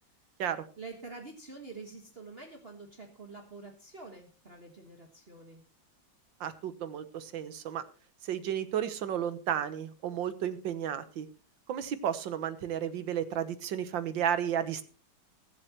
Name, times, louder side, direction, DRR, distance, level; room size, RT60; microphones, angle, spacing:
voice 1, 0.8-5.6, right 3 dB, 30° right, 2 dB, 1.6 m, -47 dB
voice 2, 6.4-7.8 8.2-11.3 11.7-14.8, right 9 dB, 70° right, 12 dB, 1.7 m, -33 dB
23.0 x 7.7 x 3.0 m, 0.35 s
omnidirectional pair, 2.1 m